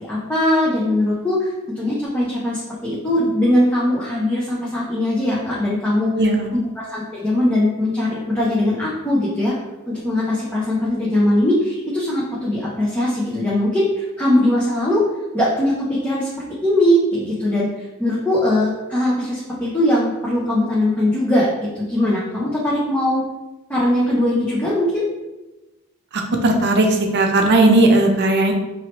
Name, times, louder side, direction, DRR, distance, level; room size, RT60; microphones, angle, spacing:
voice 1, 0.1-6.1 6.8-9.6 9.9-15.0 15.3-16.3 16.6-23.2 23.7-25.0, left 1 dB, 10° left, -7 dB, 0.6 m, -20 dB
voice 2, 6.2-6.5 26.4-28.5, right 2 dB, 50° right, 3 dB, 0.6 m, -16 dB
4.5 x 3.1 x 3.0 m, 1.1 s
head